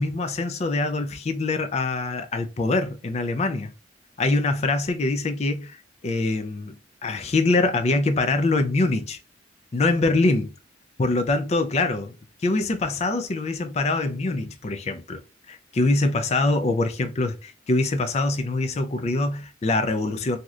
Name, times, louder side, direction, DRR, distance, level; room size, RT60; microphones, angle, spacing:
voice 1, 0.0-3.7 4.2-5.8 6.0-9.2 9.7-10.5 11.0-12.1 12.4-15.2 15.5-20.4, left 2 dB, 35° left, 0.4 m, -24 dB
3.1 x 2.7 x 2.4 m
head